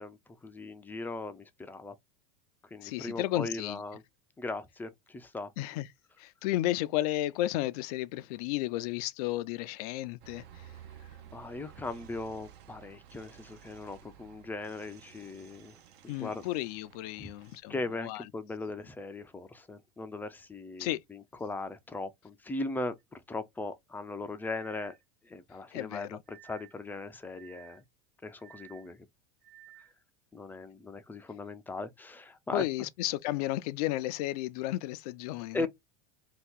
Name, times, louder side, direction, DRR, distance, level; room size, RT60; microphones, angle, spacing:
voice 1, 0.0-1.9 2.7-4.0 4.4-5.5 11.3-15.7 16.2-16.4 17.2-17.3 17.7-24.9 25.2-27.8 28.2-29.1 30.3-32.7 35.5-35.7, left 2 dB, 10° left, 0.4 m, -39 dB
voice 2, 2.8-3.8 5.6-5.9 6.2-10.7 16.1-18.2 20.8-21.0 25.7-26.2 32.5-35.7, left 16 dB, 70° left, 0.4 m, -33 dB
sound 1, 10.2-17.6, right 10 dB, 50° right, 0.7 m, -53 dB
sound 2, 23.0-23.1 24.5-25.0 26.3-26.8 27.3-27.8 28.4-28.9 29.4-29.9, right 14 dB, 70° right, 1.2 m, -55 dB
2.8 x 2.3 x 3.5 m
supercardioid pair, 125°, 20 cm